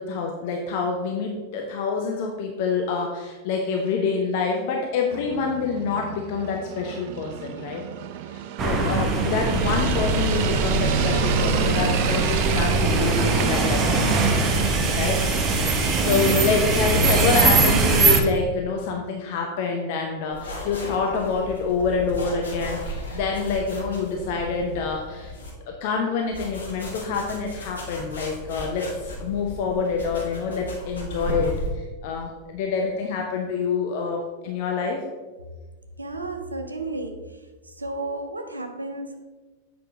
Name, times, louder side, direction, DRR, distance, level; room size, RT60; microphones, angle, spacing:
voice 1, 0.0-7.8 8.3-14.2 15.0-15.3 15.6-25.3 25.7-35.0, left 5 dB, 50° left, 1 dB, 0.8 m, -27 dB
sound 1, 5.1-16.7, right 10 dB, 50° right, 0.4 m, -32 dB
sound 2, 8.6-18.2, right 3 dB, 30° right, 0.9 m, -21 dB
sound 3, 20.3-25.5 26.3-31.7, left 1 dB, 70° left, 1.6 m, -35 dB
voice 2, 36.0-37.4 37.6-39.2, right 2 dB, 80° right, 6 dB, 0.7 m, -33 dB
7.9 x 5.7 x 3.6 m, 1.3 s
figure-of-eight pair, 90°, 0 cm